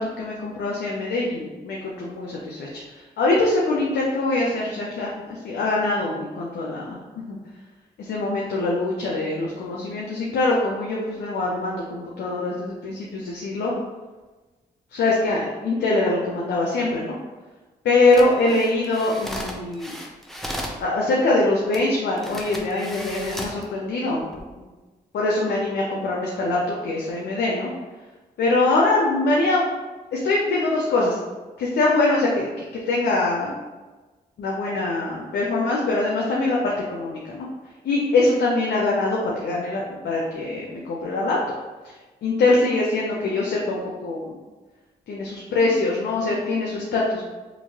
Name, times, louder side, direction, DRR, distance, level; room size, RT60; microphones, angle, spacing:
voice 1, 0.0-2.8 3.2-7.0 7.3-7.4 8.1-13.7 14.9-17.2 17.8-20.0 20.8-24.5 25.1-27.7 28.4-29.7 30.1-31.2 31.6-32.5 32.7-33.6 34.4-37.5 37.8-41.4 42.2-44.3 45.1-47.2, left 2 dB, 85° left, -3 dB, 0.5 m, -23 dB
sound 1, 18.0-20.8 21.7-21.8 22.2-23.6 24.2-24.4, equal, ahead, 0.6 m, -35 dB
3.0 x 2.5 x 2.8 m, 1.2 s
cardioid pair, 50°, 17 cm